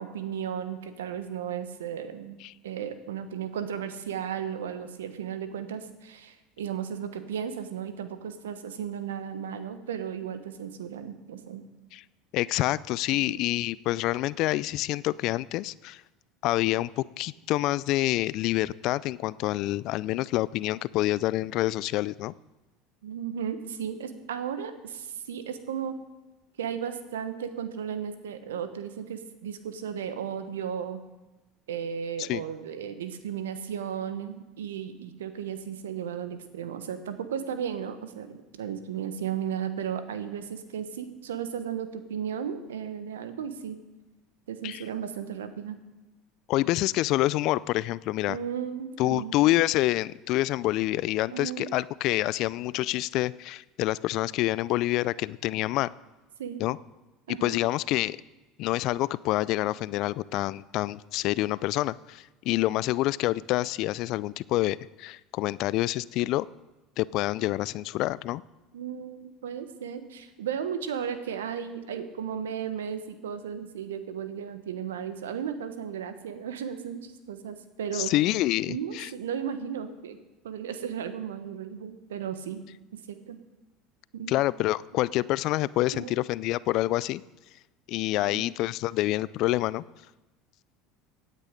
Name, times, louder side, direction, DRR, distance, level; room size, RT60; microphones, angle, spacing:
voice 1, 0.0-2.4 2.6-11.6 13.1-13.4 23.0-25.9 26.6-31.0 31.7-43.8 44.5-45.8 48.3-49.3 51.3-51.8 56.4-56.6 57.3-57.6 68.7-78.1 78.7-80.2 80.4-82.6 82.9-83.4 84.1-84.3 85.9-86.1 88.1-88.4, right 8 dB, 85° right, 10 dB, 1.1 m, -35 dB
voice 2, 12.3-16.0 16.4-22.3 32.2-32.4 44.6-44.8 46.5-48.4 49.0-55.9 56.6-56.8 57.3-58.2 58.6-66.5 67.0-68.4 77.9-79.1 84.3-87.2 87.9-89.8, left 17 dB, 60° left, 20 dB, 0.3 m, -27 dB
16.5 x 9.0 x 5.2 m, 1.1 s
hypercardioid pair, 80°, 0 cm